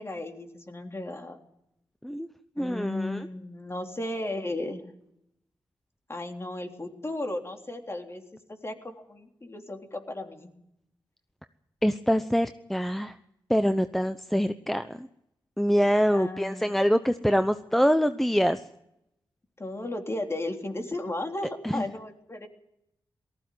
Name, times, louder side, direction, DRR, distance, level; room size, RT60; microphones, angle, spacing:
voice 1, 0.0-1.4 2.6-4.8 6.1-8.2 8.5-10.5 16.1-16.8 19.6-22.5, left 1 dB, 30° left, 4 dB, 3.5 m, -35 dB
voice 2, 2.6-3.3 11.8-13.1 13.5-15.1 15.6-18.6 21.6-21.8, equal, 5° left, 10 dB, 0.9 m, -25 dB
18.5 x 15.0 x 9.4 m, 0.82 s
cardioid pair, 50°, 9 cm